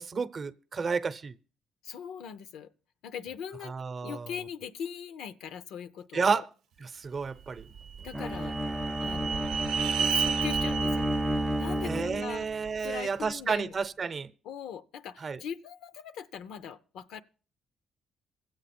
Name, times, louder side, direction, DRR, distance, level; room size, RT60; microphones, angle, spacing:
voice 1, 0.0-1.3 3.6-4.3 6.1-6.5 6.8-7.7 11.8-14.3 15.2-15.4, right 5 dB, 40° right, 0.7 m, -31 dB
voice 2, 1.8-2.7 3.0-3.8 4.0-6.4 8.0-8.6 9.0-9.6 10.0-11.2 11.6-12.5 12.8-13.8 14.4-17.2, left 8 dB, 85° left, 0.6 m, -40 dB
sound 1, 7.6-12.8, right 7 dB, 80° right, 0.6 m, -33 dB
Bowed string instrument, 8.1-12.5, right 1 dB, ahead, 0.5 m, -31 dB
23.5 x 7.9 x 4.2 m
cardioid pair, 90°, 0 cm